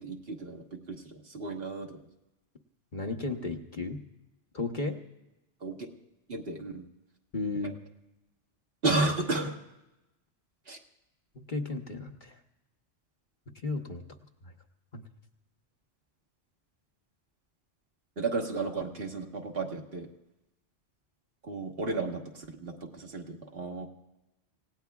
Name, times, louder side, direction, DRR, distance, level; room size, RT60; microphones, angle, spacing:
voice 1, 0.0-2.0 5.6-5.8 6.3-6.8 8.8-9.6 10.7-10.8 18.2-20.1 21.4-23.9, right 3 dB, 55° right, 2 dB, 1.6 m, -33 dB
voice 2, 2.9-4.0 4.5-5.0 7.3-7.7 11.3-12.4 13.6-14.0 14.9-15.0, left 3 dB, 45° left, 4 dB, 1.1 m, -34 dB
28.0 x 17.5 x 2.3 m, 0.95 s
omnidirectional pair, 1.2 m